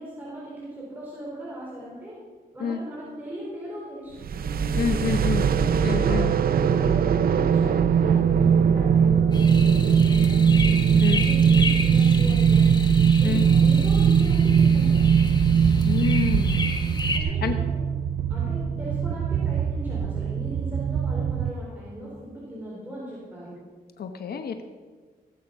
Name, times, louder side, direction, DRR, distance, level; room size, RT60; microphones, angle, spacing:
voice 1, 0.0-2.2 2.5-4.2 4.8-5.3 6.0-10.6 11.1-12.8 13.2-15.0 17.1-17.8 18.3-23.6, right 1 dB, 10° right, -7 dB, 4.4 m, -38 dB
sound 1, 4.2-21.5, right 7 dB, 70° right, 0.7 m, -21 dB
voice 2, 4.7-5.4 5.8-6.3 11.0-11.2 13.2-13.5 15.8-16.7 17.2-17.6 24.0-24.6, left 6 dB, 80° left, 7 dB, 1.0 m, -28 dB
sound 2, 9.3-17.2, left 3 dB, 25° left, 1.6 m, -33 dB
18.0 x 8.8 x 5.4 m, 1.5 s
cardioid pair, 95°, 16 cm